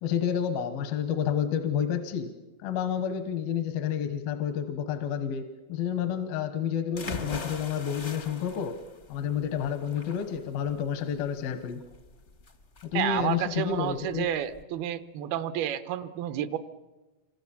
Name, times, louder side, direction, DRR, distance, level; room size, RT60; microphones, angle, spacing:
voice 1, 0.0-2.3 2.6-8.8 9.1-11.8 12.8-14.3, left 8 dB, 80° left, 8 dB, 3.0 m, -30 dB
sound 1, 6.9-14.6, left 3 dB, 60° left, 0.7 m, -42 dB
voice 2, 12.9-16.6, right 11 dB, 85° right, 12 dB, 2.9 m, -30 dB
27.5 x 24.0 x 7.1 m, 1.2 s
omnidirectional pair, 4.3 m